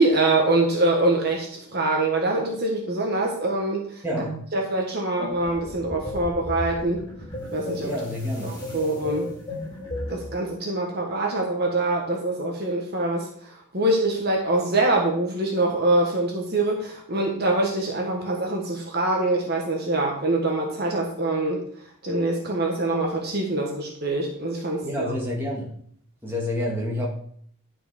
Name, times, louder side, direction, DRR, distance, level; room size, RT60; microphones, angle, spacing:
voice 1, 0.0-4.0 4.5-7.1 7.5-7.9 8.4-9.3 10.1-13.3 13.7-21.6 22.0-25.0, right 2 dB, 45° right, 0 dB, 1.5 m, -24 dB
voice 2, 4.0-4.4 7.8-8.6 24.8-25.7 26.2-27.1, left 1 dB, 10° right, -4 dB, 2.4 m, -28 dB
sound 1, 5.2-10.3, left 1 dB, 20° left, 3.8 m, -35 dB
11.0 x 6.1 x 5.2 m, 0.62 s
head